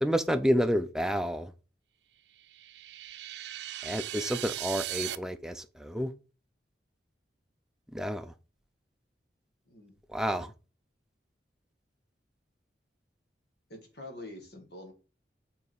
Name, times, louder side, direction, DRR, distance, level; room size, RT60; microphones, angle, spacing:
voice 1, 0.0-1.5 3.8-6.1 7.9-8.3 10.1-10.5, equal, 5° right, 0.4 m, -29 dB
sound 1, 2.4-5.2, right 13 dB, 70° right, 0.4 m, -38 dB
voice 2, 9.7-10.0 13.7-14.9, left 1 dB, 65° left, 1.9 m, -45 dB
5.6 x 4.0 x 4.6 m
head